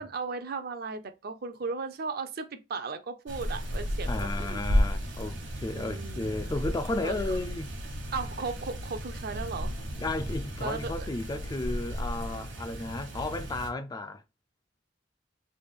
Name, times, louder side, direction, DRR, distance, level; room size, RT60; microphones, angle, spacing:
voice 1, 0.0-4.6 5.7-6.4 7.0-7.4 8.1-9.7 10.6-11.1, right 4 dB, 55° right, 0.5 m, -36 dB
sound 1, 3.3-13.7, equal, 70° right, 1.1 m, -33 dB
voice 2, 4.1-7.7 10.0-14.2, left 2 dB, 20° left, 0.3 m, -33 dB
3.4 x 2.3 x 3.5 m
head